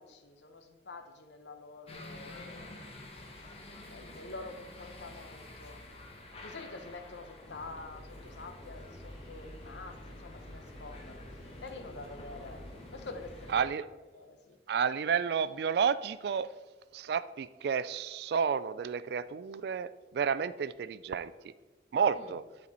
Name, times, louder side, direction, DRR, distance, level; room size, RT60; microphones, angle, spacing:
voice 1, 0.0-2.9 3.3-5.8 6.4-11.2 11.6-12.6 12.9-14.6 22.1-22.4, left 3 dB, 80° left, 7 dB, 0.8 m, -47 dB
sound 1, 1.9-13.5, left 2 dB, 35° left, 1.0 m, -50 dB
sound 2, 7.4-13.7, equal, 5° left, 1.9 m, -49 dB
voice 2, 13.5-13.9 14.7-16.5 16.9-21.3 21.9-22.4, right 6 dB, 65° right, 16 dB, 0.3 m, -31 dB
9.8 x 4.5 x 4.1 m, 1.2 s
head